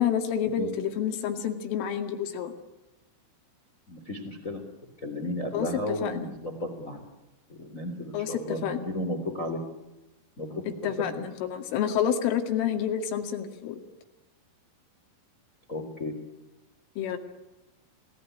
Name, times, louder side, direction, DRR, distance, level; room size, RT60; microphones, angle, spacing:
voice 1, 0.0-2.5 5.5-6.3 8.1-8.9 10.7-13.8 17.0-17.2, left 9 dB, 75° left, 7 dB, 4.7 m, -29 dB
voice 2, 3.9-4.6 5.0-7.0 7.5-9.6 10.4-10.7 11.0-11.2 15.7-16.2, left 1 dB, 20° left, 8 dB, 2.9 m, -34 dB
29.5 x 19.5 x 9.9 m, 1.0 s
omnidirectional pair, 5.8 m